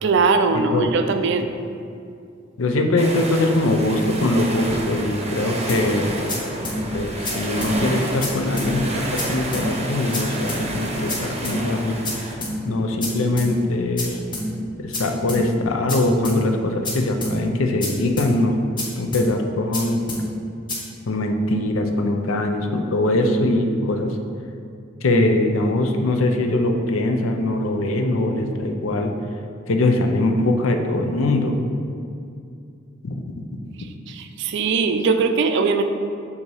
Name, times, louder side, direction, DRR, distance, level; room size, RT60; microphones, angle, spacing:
voice 1, 0.0-1.5 34.1-35.8, right 4 dB, 60° right, 8 dB, 0.4 m, -20 dB
voice 2, 0.5-0.9 2.6-6.2 6.9-12.0 12.3-12.4 12.6-14.2 14.8-18.6 19.0-20.0 21.1-24.2 25.0-29.1 29.7-31.6 33.0-33.4, left 2 dB, 85° left, 4 dB, 0.6 m, -22 dB
sound 1, 3.0-12.4, right 1 dB, 35° right, 0.7 m, -29 dB
sound 2, 5.7-5.8 6.3-6.4 6.6-6.8 7.2-7.3 7.6-7.7 8.2-8.3 8.6-8.7 9.2-9.3 9.5-9.7 10.1-10.2 10.5-10.6 11.1-11.2 11.4-11.6 12.0-12.1 12.4-12.5 13.0-13.1 13.4-13.5 14.0-14.1 14.3-14.5 14.9-15.0 15.3-15.4 15.9-16.0 16.2-16.4 16.8-16.9 17.2-17.3 17.8-17.9 18.2-18.3 18.8-18.9 19.1-19.3 19.7-19.8 20.1-20.2 20.7-20.8, left 2 dB, 25° left, 0.9 m, -27 dB
7.1 x 2.8 x 4.8 m, 2.4 s
head